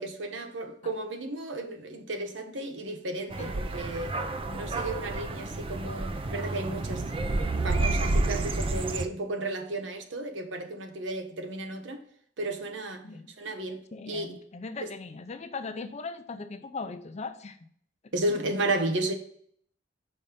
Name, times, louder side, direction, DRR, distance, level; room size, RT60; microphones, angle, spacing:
voice 1, 0.0-4.2 4.5-7.1 7.6-12.0 12.4-13.0 13.4-13.8 14.1-14.3 14.8-14.9 18.1-19.1, right 2 dB, 75° right, 1.0 m, -33 dB
sound 1, 3.3-9.1, right 2 dB, 30° right, 0.4 m, -30 dB
voice 2, 13.9-17.6, left 4 dB, 35° left, 0.5 m, -39 dB
5.6 x 4.4 x 5.0 m
head